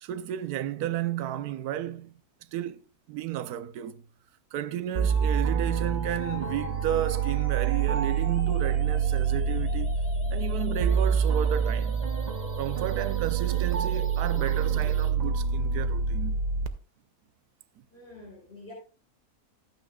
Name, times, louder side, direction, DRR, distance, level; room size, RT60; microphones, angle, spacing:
voice 1, 0.0-2.1 2.5-4.0 4.5-10.0 10.3-12.1 12.6-16.4, right 12 dB, 90° right, 1.1 m, -32 dB
sound 1, 5.0-16.7, right 6 dB, 55° right, 0.5 m, -27 dB
sound 2, 5.1-15.1, left 1 dB, 10° left, 1.8 m, -42 dB
voice 2, 17.9-18.7, left 2 dB, 40° left, 4.0 m, -47 dB
13.5 x 9.1 x 2.3 m
omnidirectional pair, 1.6 m